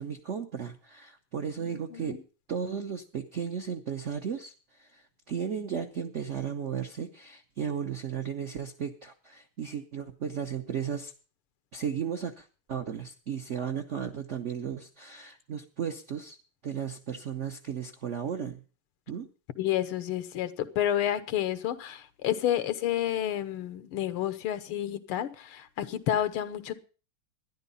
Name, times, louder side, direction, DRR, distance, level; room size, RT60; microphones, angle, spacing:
voice 1, 0.0-2.2 2.5-11.1 11.7-16.4 16.6-18.6 19.1-19.3, right 7 dB, 70° right, 0.6 m, -35 dB
voice 2, 1.6-2.2 19.6-26.7, left 11 dB, 90° left, 1.8 m, -30 dB
12.0 x 10.5 x 5.5 m
omnidirectional pair, 2.3 m